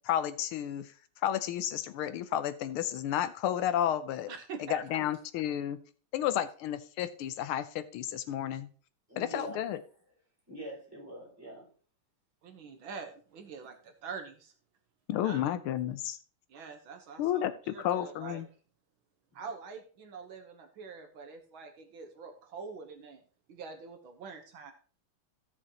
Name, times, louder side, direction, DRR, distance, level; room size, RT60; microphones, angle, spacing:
voice 1, 0.0-0.9 1.2-4.3 4.6-5.8 6.1-8.7 9.2-9.8 15.1-16.2 17.2-18.5, left 11 dB, 90° left, 1.6 m, -32 dB
voice 2, 4.3-5.0 12.4-14.5 15.2-15.4 16.5-18.5 19.3-23.2 23.5-24.7, right 5 dB, 75° right, 1.9 m, -45 dB
voice 3, 9.1-9.6 10.5-11.7 15.8-15.9, right 1 dB, 5° right, 6.2 m, -44 dB
15.5 x 6.4 x 2.9 m
omnidirectional pair, 2.3 m